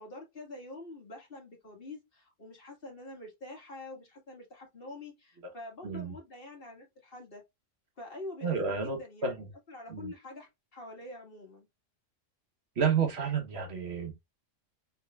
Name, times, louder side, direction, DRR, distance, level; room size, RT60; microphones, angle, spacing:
voice 1, 0.0-7.4 8.0-11.7, left 2 dB, 45° left, 2.0 m, -46 dB
voice 2, 5.8-6.1 8.4-9.3 9.9-10.1 12.8-14.3, right 6 dB, 55° right, 1.3 m, -30 dB
5.6 x 3.8 x 2.3 m
omnidirectional pair, 1.3 m